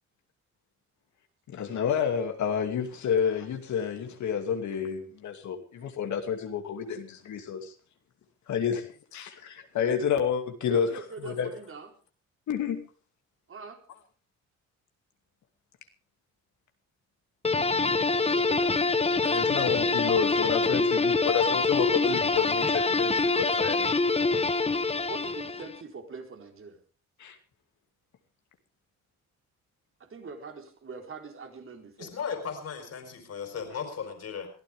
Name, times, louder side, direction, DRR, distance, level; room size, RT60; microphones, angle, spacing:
voice 1, 1.5-7.7 8.5-10.9 11.2-11.5 12.5-12.8 19.2-24.0 27.2-27.4, left 7 dB, 70° left, 4 dB, 2.6 m, -29 dB
voice 2, 10.6-11.9 13.5-13.8 18.2-19.0 24.7-26.8 30.0-32.1, right 4 dB, 45° right, 4 dB, 4.3 m, -43 dB
sound 1, 17.4-25.8, left 3 dB, 20° left, 1.2 m, -25 dB
voice 3, 32.0-34.5, left 6 dB, 55° left, 5 dB, 4.7 m, -36 dB
22.5 x 14.5 x 3.6 m, 0.39 s
cardioid pair, 90°, 30 cm